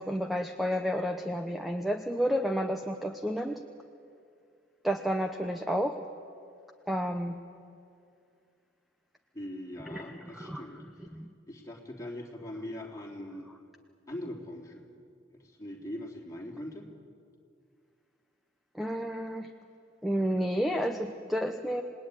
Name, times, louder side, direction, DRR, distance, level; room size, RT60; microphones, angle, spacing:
voice 1, 0.0-3.6 4.8-5.9 6.9-7.3 9.9-10.0 10.3-10.6 11.1-11.3 18.8-19.5 20.0-21.8, equal, ahead, 5 dB, 0.8 m, -30 dB
voice 2, 9.3-10.8 11.5-13.5 14.1-14.9 15.3-16.9, left 1 dB, 20° left, -1 dB, 3.2 m, -41 dB
27.5 x 19.5 x 9.8 m, 2.4 s
head